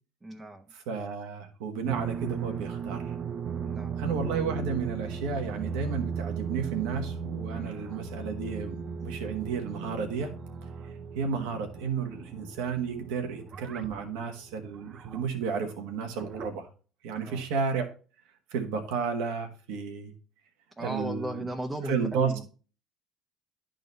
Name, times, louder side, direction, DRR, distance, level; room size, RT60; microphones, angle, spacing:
voice 1, 0.2-0.7 3.6-4.0 7.5-7.7 17.1-17.4 20.8-22.5, right 1 dB, 20° right, 3 dB, 0.8 m, -36 dB
voice 2, 0.7-3.1 4.0-10.3 11.1-16.7 17.0-17.9 18.5-20.1 20.8-21.4 21.8-22.3, right 5 dB, 80° right, 5 dB, 1.3 m, -32 dB
sound 1, 1.9-15.3 16.0-16.5, right 7 dB, 50° right, 0.6 m, -37 dB
sound 2, 4.2-13.0, left 5 dB, 45° left, 0.7 m, -47 dB
10.5 x 3.9 x 4.0 m, 0.37 s
supercardioid pair, 75°, 0 cm